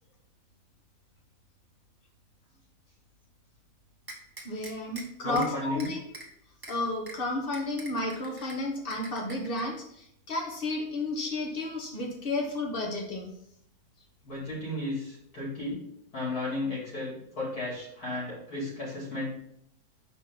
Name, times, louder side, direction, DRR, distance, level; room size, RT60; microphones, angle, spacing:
sound 1, 4.1-5.0 5.4-5.5 5.8-6.3 6.6-6.7 7.1-7.2 7.5-8.6 8.9-9.6, right 2 dB, 15° right, 1.0 m, -43 dB
voice 1, 4.4-6.0 6.7-13.3, left 2 dB, 40° left, 1 dB, 1.4 m, -32 dB
voice 2, 5.2-5.9 14.2-15.8 16.1-19.3, left 2 dB, 80° left, -6 dB, 3.5 m, -34 dB
5.3 x 5.2 x 4.1 m, 0.73 s
omnidirectional pair, 1.6 m